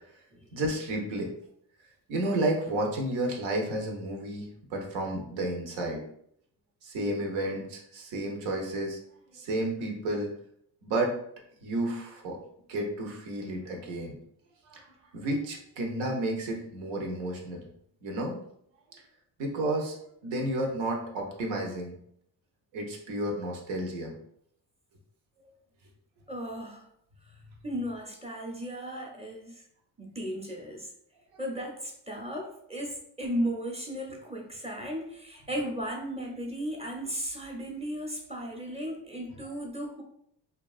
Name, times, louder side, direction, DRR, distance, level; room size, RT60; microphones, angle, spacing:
voice 1, 0.5-1.3 2.1-6.0 6.8-9.0 9.3-10.3 10.8-11.2 11.6-12.4 12.7-14.2 14.7-14.8 15.1-17.6 18.0-18.4 19.4-20.0 20.2-21.9 22.7-24.1, right 1 dB, 85° right, 0 dB, 0.8 m, -31 dB
voice 2, 26.3-26.9 27.6-29.6 30.0-30.9 31.4-40.0, equal, 15° right, -1 dB, 0.6 m, -35 dB
2.8 x 2.3 x 2.4 m, 0.70 s
cardioid pair, 85°, 44 cm